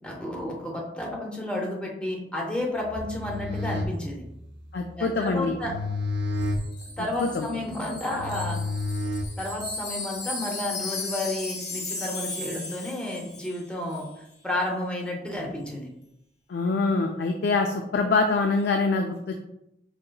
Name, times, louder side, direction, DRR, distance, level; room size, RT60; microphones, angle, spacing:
voice 1, 0.0-4.2 5.0-5.7 7.0-8.6 9.4-14.0 14.4-15.9, left 1 dB, 5° left, -2 dB, 0.6 m, -31 dB
sound 1, 2.9-9.8, left 2 dB, 75° right, 0.6 m, -32 dB
voice 2, 4.7-5.5 7.0-7.5 16.5-19.4, left 3 dB, 65° left, 4 dB, 0.3 m, -25 dB
Wind chime, 6.4-13.7 13.9-14.1, left 3 dB, 45° left, 0.8 m, -36 dB
5.0 x 2.8 x 2.2 m, 0.83 s
head